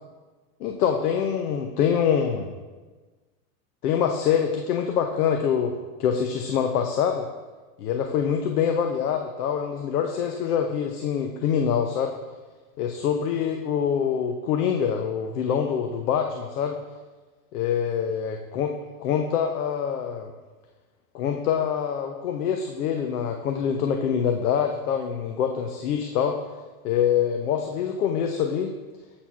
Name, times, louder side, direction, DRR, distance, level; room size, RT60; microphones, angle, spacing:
voice 1, 0.6-2.5 3.8-7.3 7.8-12.1 12.8-16.8 17.5-18.7 19.0-20.3 21.1-26.4 26.8-28.7, left 8 dB, 70° left, 4 dB, 0.8 m, -25 dB
7.7 x 4.3 x 5.6 m, 1.3 s
supercardioid pair, 160°, 47 cm